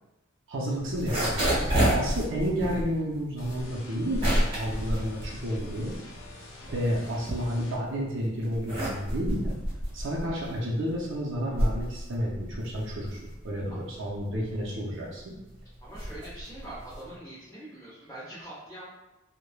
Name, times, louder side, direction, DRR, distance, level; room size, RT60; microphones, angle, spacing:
voice 1, 0.5-5.9 6.7-9.5 9.9-15.3, equal, 70° right, -3 dB, 0.5 m, -31 dB
sound 1, 0.8-6.1 6.5-7.9 8.4-17.2, right 1 dB, 30° right, 1.0 m, -30 dB
sound 2, 3.4-7.8, left 2 dB, 80° left, 0.5 m, -46 dB
voice 2, 15.8-18.9, right 1 dB, 15° left, -10 dB, 0.7 m, -43 dB
3.1 x 2.1 x 2.2 m, 0.95 s
head